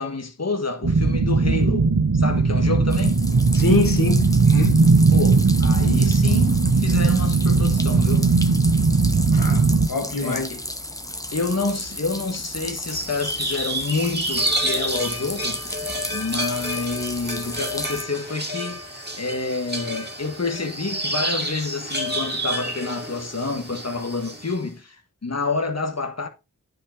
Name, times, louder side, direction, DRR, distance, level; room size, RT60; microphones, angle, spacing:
voice 1, 0.0-3.2 5.1-8.3 10.2-10.6 11.3-15.6 16.1-26.3, left 3 dB, 50° left, 1.6 m, -28 dB
sound 1, 0.8-9.9, right 4 dB, 65° right, 1.2 m, -18 dB
sound 2, 2.9-18.0, left 1 dB, 10° left, 1.2 m, -34 dB
voice 2, 3.5-4.9 9.3-10.5, left 3 dB, 85° left, 1.6 m, -24 dB
sound 3, 12.9-24.6, right 1 dB, 30° right, 2.3 m, -29 dB
9.9 x 5.5 x 4.6 m
wide cardioid pair, 45°, 33 cm